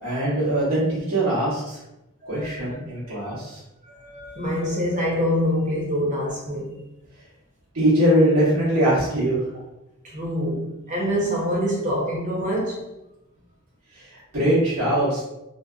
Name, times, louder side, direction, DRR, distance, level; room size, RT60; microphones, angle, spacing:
voice 1, 0.0-1.8 2.3-3.6 7.7-9.4 13.9-15.2, right 1 dB, 90° right, 1.0 m, -22 dB
voice 2, 2.2-2.8 3.2-3.4 3.9-6.7 10.0-12.8, equal, 35° right, 0.8 m, -26 dB
2.5 x 2.1 x 2.4 m
head